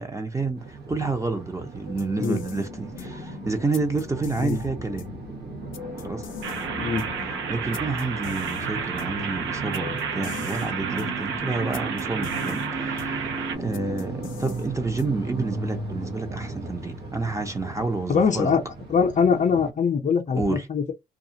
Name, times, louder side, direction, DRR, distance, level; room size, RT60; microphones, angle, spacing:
voice 1, 0.0-5.1 6.0-6.3 7.5-13.3 13.6-18.5 20.3-20.7, right 3 dB, 15° right, 0.8 m, -29 dB
sound 1, 0.6-19.7, right 3 dB, 55° right, 1.0 m, -36 dB
sound 2, 1.9-15.3, left 9 dB, 80° left, 0.6 m, -41 dB
sound 3, 6.4-13.6, right 6 dB, 85° right, 0.7 m, -31 dB
voice 2, 18.1-18.6 18.9-20.9, left 6 dB, 40° left, 0.6 m, -22 dB
2.4 x 2.4 x 2.8 m
cardioid pair, 90°, 20 cm